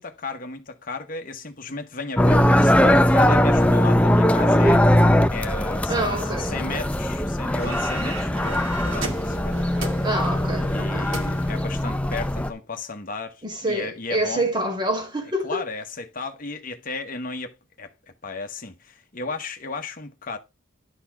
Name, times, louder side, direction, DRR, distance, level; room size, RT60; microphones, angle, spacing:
voice 1, 0.0-10.0 10.7-14.5 15.4-17.9 18.2-20.4, left 3 dB, 40° left, 1.0 m, -34 dB
sound 1, 2.2-12.5, left 1 dB, 5° left, 0.5 m, -20 dB
voice 2, 5.9-6.9 10.0-11.1 13.4-15.6, right 1 dB, 20° right, 2.1 m, -27 dB
sound 2, 7.6-12.5, right 3 dB, 75° right, 2.3 m, -37 dB
11.5 x 4.3 x 5.8 m
head